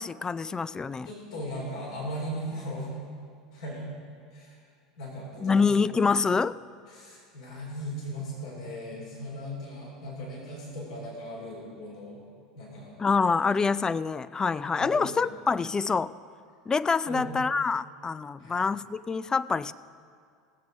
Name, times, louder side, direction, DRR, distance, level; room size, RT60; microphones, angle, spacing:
voice 1, 0.0-1.1 5.4-6.6 13.0-16.1 16.7-19.7, left 5 dB, 20° left, 17 dB, 0.3 m, -26 dB
voice 2, 1.0-2.9 3.5-3.9 4.3-4.6 5.0-5.7 6.9-12.2 12.5-13.0 13.4-13.6 14.8-15.1 17.1-17.3 18.4-18.6, equal, 70° left, -4 dB, 3.8 m, -38 dB
18.0 x 8.1 x 5.1 m, 2.2 s
hypercardioid pair, 80°, 4 cm